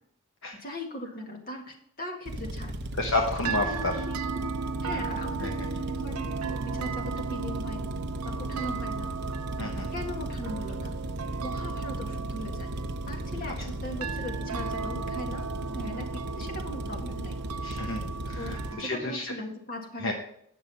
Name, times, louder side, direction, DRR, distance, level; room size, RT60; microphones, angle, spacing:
voice 1, 0.6-2.8 3.4-4.5 4.8-7.8 8.2-9.1 9.9-11.0 11.4-12.7 13.1-17.4 18.4-20.1, left 1 dB, 40° left, 2 dB, 1.8 m, -39 dB
sound 1, 2.3-18.7, right 1 dB, 50° right, 0.8 m, -36 dB
voice 2, 3.0-4.0 5.4-5.5 9.6-9.9 17.6-19.2 20.0-20.1, left 2 dB, 60° left, 2 dB, 1.0 m, -30 dB
sound 2, 3.4-18.9, right 5 dB, 90° right, 0.5 m, -36 dB
9.5 x 6.6 x 5.5 m, 0.69 s
head